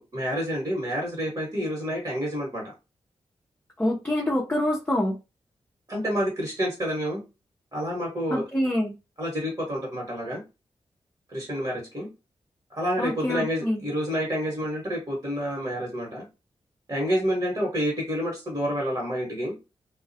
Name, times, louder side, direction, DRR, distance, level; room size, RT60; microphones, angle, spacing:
voice 1, 0.0-2.6 5.9-7.2 7.7-8.4 9.2-10.4 11.3-12.1 12.7-16.2 16.9-19.5, equal, 35° right, 1.2 m, -28 dB
voice 2, 3.8-5.2 8.3-8.9 13.0-13.8, left 1 dB, 15° left, 0.6 m, -26 dB
2.2 x 2.0 x 2.7 m
supercardioid pair, 40°, 11 cm